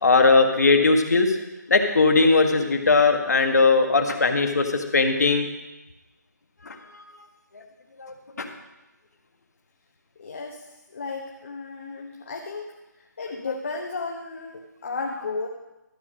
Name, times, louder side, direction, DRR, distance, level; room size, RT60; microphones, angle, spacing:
voice 1, 0.0-1.4 1.7-5.5 6.6-6.8 8.0-8.5, left 3 dB, 60° left, 5 dB, 1.6 m, -19 dB
voice 2, 10.2-15.5, left 4 dB, 40° left, 1 dB, 1.0 m, -34 dB
13.0 x 6.8 x 6.3 m, 1.0 s
hypercardioid pair, 170°, 10 cm